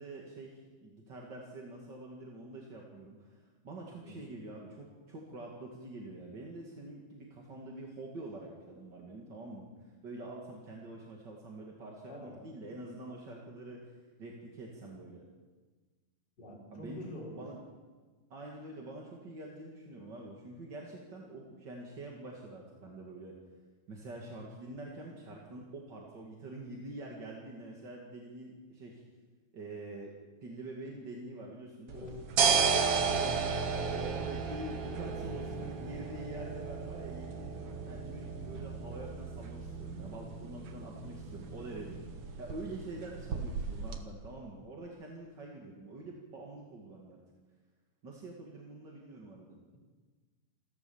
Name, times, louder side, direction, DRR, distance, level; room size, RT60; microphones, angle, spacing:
voice 1, 0.0-15.2 16.7-17.6 18.3-23.4 23.9-29.0 29.5-32.1 33.5-42.0 42.4-47.2 48.0-49.6, right 2 dB, 35° right, -2 dB, 2.2 m, -46 dB
voice 2, 12.0-12.4 16.4-17.5 31.9-32.2 32.6-33.6 34.9-35.7, left 1 dB, 25° left, -4 dB, 5.2 m, -46 dB
sound 1, 31.9-44.0, right 5 dB, 55° right, 1.7 m, -34 dB
28.5 x 13.5 x 7.1 m, 1.4 s
omnidirectional pair, 4.4 m